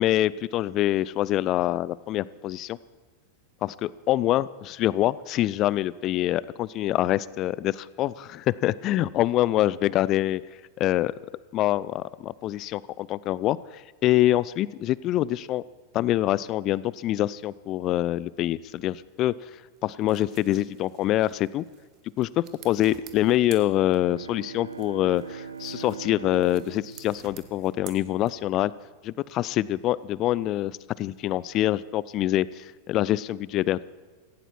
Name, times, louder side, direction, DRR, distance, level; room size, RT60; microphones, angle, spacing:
voice 1, 0.0-2.8 3.6-10.4 10.8-11.1 11.5-15.6 15.9-19.3 19.8-21.6 22.2-28.7 29.0-33.8, left 14 dB, 35° left, 20 dB, 0.5 m, -25 dB
sound 1, 19.8-24.3 24.7-28.7, right 11 dB, 40° right, 1.5 m, -51 dB
Bowed string instrument, 23.9-28.5, right 6 dB, 80° right, 0.7 m, -41 dB
18.0 x 16.0 x 4.5 m, 1.4 s
figure-of-eight pair, 90°, 0 cm